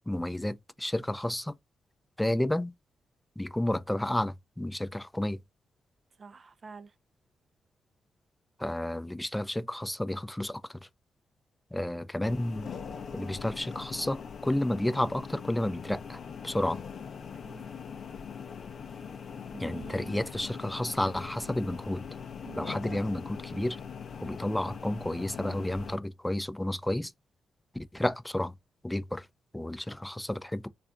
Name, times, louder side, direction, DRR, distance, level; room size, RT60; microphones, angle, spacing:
voice 1, 0.1-1.6 2.2-2.7 3.4-5.4 8.6-10.8 11.7-12.7 13.1-16.2 16.4-16.8 19.6-22.0 22.6-23.8 24.2-27.1 27.7-28.5 28.8-29.3 29.5-30.7, left 1 dB, 10° left, 0.4 m, -31 dB
voice 2, 6.2-7.0 17.4-17.7 18.9-20.2 22.4-22.8, right 5 dB, 50° right, 0.5 m, -48 dB
sound 1, 12.2-26.0, left 6 dB, 60° left, 0.6 m, -41 dB
3.3 x 2.5 x 3.5 m
supercardioid pair, 50°, 0 cm